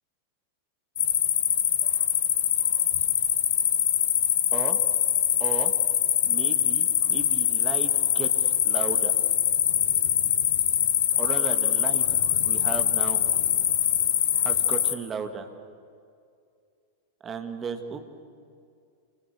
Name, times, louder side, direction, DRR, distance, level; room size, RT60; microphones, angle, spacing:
sound 1, 1.0-14.9, left 11 dB, 60° left, 1.5 m, -23 dB
voice 1, 5.4-5.7 6.2-9.1 11.2-12.0 12.4-13.2 14.4-15.5 17.2-18.0, right 5 dB, 25° right, 7 dB, 2.3 m, -35 dB
28.5 x 21.5 x 6.9 m, 2.3 s
figure-of-eight pair, 90°, 0 cm